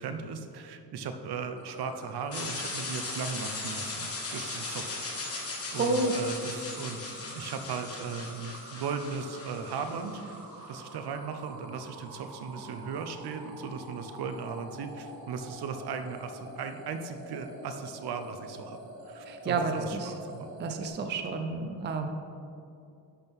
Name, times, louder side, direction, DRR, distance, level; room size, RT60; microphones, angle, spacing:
voice 1, 0.0-5.0 5.3-5.4 5.7-7.0 7.3-10.2 10.7-18.8 19.0-20.5, right 5 dB, 65° right, 8 dB, 0.7 m, -37 dB
sound 1, 1.5-20.9, right 1 dB, 50° right, 1.4 m, -47 dB
sound 2, 2.3-10.3, left 3 dB, 35° left, 1.3 m, -38 dB
voice 2, 5.8-6.1 6.5-6.6 19.2-20.1 20.6-22.1, right 3 dB, 25° right, 5 dB, 0.4 m, -30 dB
11.0 x 6.2 x 3.5 m, 2.6 s
wide cardioid pair, 170°, 42 cm